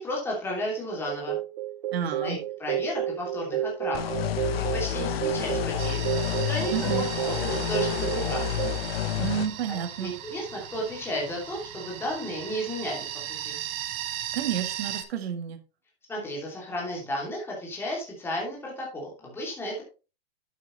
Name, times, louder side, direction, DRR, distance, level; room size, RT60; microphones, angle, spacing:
voice 1, 0.0-1.4 2.2-6.1 6.5-8.7 9.7-13.0 13.4-13.6 16.1-19.8, left 1 dB, 5° left, -2 dB, 2.8 m, -33 dB
sound 1, 1.1-8.8, right 11 dB, 45° right, 0.4 m, -31 dB
voice 2, 1.9-2.4 6.7-7.1 9.2-10.1 14.3-15.6, right 9 dB, 70° right, 8 dB, 1.7 m, -30 dB
sound 2, 3.9-9.5, left 12 dB, 70° left, 1.2 m, -30 dB
sound 3, 5.8-15.0, right 11 dB, 30° right, 0.9 m, -37 dB
8.9 x 8.2 x 3.2 m, 0.32 s
supercardioid pair, 160°, 32 cm